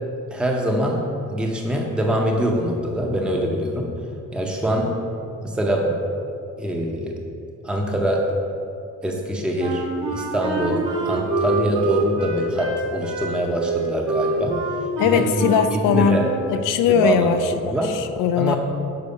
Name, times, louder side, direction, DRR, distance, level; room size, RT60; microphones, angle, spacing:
voice 1, 0.3-1.0 1.3-3.9 4.3-4.9 5.4-6.0 6.6-7.2 7.6-8.2 9.0-14.6 15.0-15.5 15.9-16.3 16.9-17.9 18.4-18.6, right 1 dB, 5° right, 0 dB, 0.6 m, -23 dB
Wind instrument woodwind instrument, 9.6-16.4, right 3 dB, 85° right, 1.3 m, -26 dB
voice 2, 15.0-16.2 16.5-18.6, left 8 dB, 90° left, 9 dB, 0.5 m, -20 dB
6.8 x 4.6 x 5.2 m, 2.6 s
cardioid pair, 135°, 31 cm